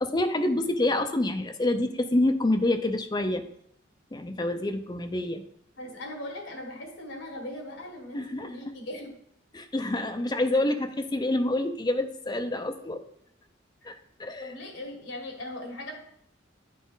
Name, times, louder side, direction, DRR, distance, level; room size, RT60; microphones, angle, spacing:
voice 1, 0.0-3.4 4.1-5.4 8.1-8.5 9.5-13.0 13.9-14.0 14.2-14.5, left 1 dB, 20° left, 7 dB, 0.6 m, -27 dB
voice 2, 5.8-9.1 14.4-16.0, left 1 dB, 80° left, 2 dB, 1.8 m, -39 dB
10.5 x 4.2 x 3.9 m, 0.71 s
head